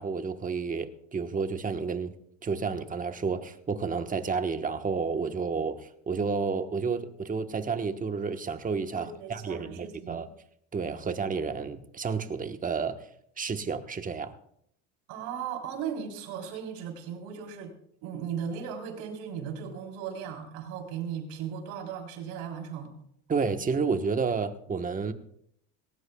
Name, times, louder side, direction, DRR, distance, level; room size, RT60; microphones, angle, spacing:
voice 1, 0.0-2.1 2.4-10.3 10.7-12.9 13.4-14.3 23.3-25.1, right 5 dB, 20° right, 1.2 m, -30 dB
voice 2, 9.0-10.3 15.1-17.7 18.0-22.9, right 7 dB, 75° right, 3.8 m, -37 dB
19.0 x 18.0 x 2.3 m
supercardioid pair, 110°, 37 cm